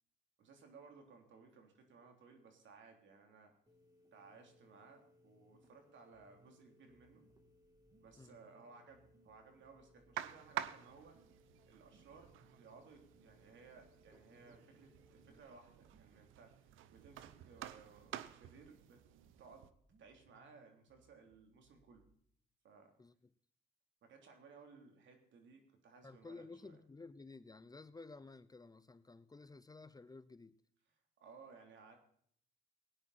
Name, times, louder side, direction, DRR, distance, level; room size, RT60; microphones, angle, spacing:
voice 1, 0.4-3.5 4.1-7.2 8.0-11.2 11.7-19.0 19.4-19.7 20.0-22.1 22.6-22.9 24.0-26.8 31.2-32.0, right 4 dB, 70° right, 3.4 m, -60 dB
sound 1, 3.7-15.4, left 1 dB, 20° right, 3.1 m, -69 dB
sound 2, 6.1-22.1, right 4 dB, 50° right, 2.6 m, -73 dB
sound 3, 10.2-19.7, right 12 dB, 90° right, 0.8 m, -50 dB
voice 2, 26.0-30.6, left 3 dB, 20° left, 0.6 m, -54 dB
17.5 x 9.9 x 4.3 m
cardioid pair, 90°, 20 cm